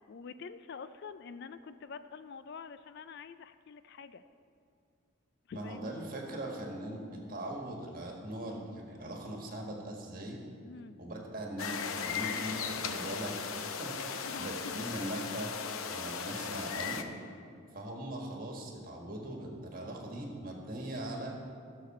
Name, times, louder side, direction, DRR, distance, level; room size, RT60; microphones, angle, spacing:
voice 1, 0.1-4.2 5.5-6.0 10.6-11.0 14.2-14.5, left 5 dB, 50° left, 12 dB, 0.3 m, -46 dB
voice 2, 5.5-10.4 11.0-13.9 14.4-15.6 15.9-17.1 17.7-21.4, right 1 dB, 40° right, 0 dB, 1.5 m, -40 dB
sound 1, 11.6-17.0, left 6 dB, 80° left, 0.7 m, -37 dB
17.0 x 6.7 x 4.2 m, 2.4 s
head